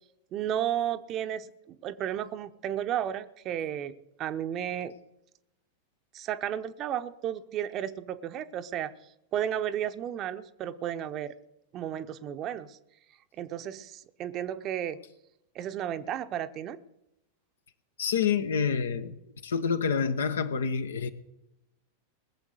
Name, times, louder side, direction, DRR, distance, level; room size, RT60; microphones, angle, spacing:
voice 1, 0.3-4.9 6.1-8.9 9.3-11.3 11.7-12.8 13.4-15.0 15.5-16.8, right 10 dB, 35° right, 11 dB, 0.8 m, -33 dB
voice 2, 18.0-19.2 19.4-21.1, left 6 dB, 65° left, 10 dB, 1.0 m, -27 dB
20.5 x 7.3 x 6.4 m, 0.87 s
figure-of-eight pair, 90°, 0 cm